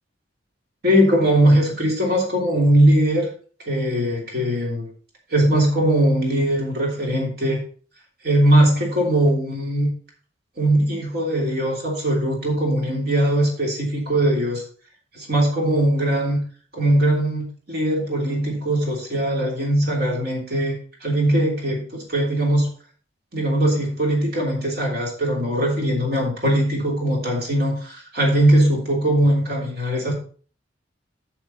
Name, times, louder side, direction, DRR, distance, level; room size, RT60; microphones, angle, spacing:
voice 1, 0.8-3.3 3.7-4.9 5.3-7.6 8.2-9.9 10.6-14.6 15.1-16.4 16.7-22.7 23.3-30.1, right 1 dB, 55° right, 3.1 m, -20 dB
7.3 x 7.3 x 4.4 m
head